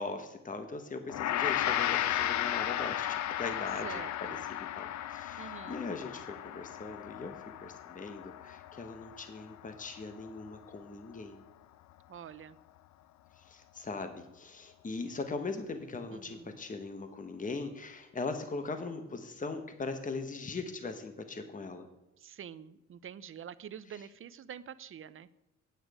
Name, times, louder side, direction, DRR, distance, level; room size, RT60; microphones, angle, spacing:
voice 1, 0.0-7.4 7.6-11.4 13.4-21.9 23.9-24.1, left 3 dB, 25° left, 7 dB, 1.2 m, -40 dB
Gong, 1.1-10.5, left 12 dB, 65° left, 0.6 m, -35 dB
voice 2, 3.8-4.4 5.4-5.8 12.1-12.6 16.1-16.6 22.2-25.3, right 8 dB, 45° right, 16 dB, 0.6 m, -46 dB
9.2 x 8.8 x 4.9 m, 0.93 s
cardioid pair, 90°, 30 cm